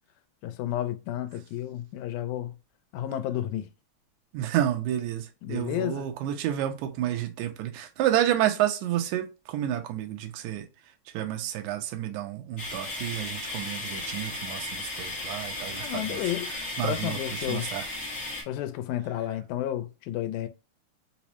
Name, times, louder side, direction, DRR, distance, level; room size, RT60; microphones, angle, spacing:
voice 1, 0.4-2.6 2.9-3.7 5.4-6.1 15.8-16.5 16.8-17.7 18.5-20.5, left 12 dB, 85° left, 1.9 m, -31 dB
voice 2, 4.3-10.7 11.1-16.2 16.5-17.9, right 12 dB, 80° right, 1.9 m, -30 dB
sound 1, 12.6-18.4, left 2 dB, 60° left, 0.8 m, -35 dB
5.1 x 2.0 x 2.9 m
omnidirectional pair, 3.4 m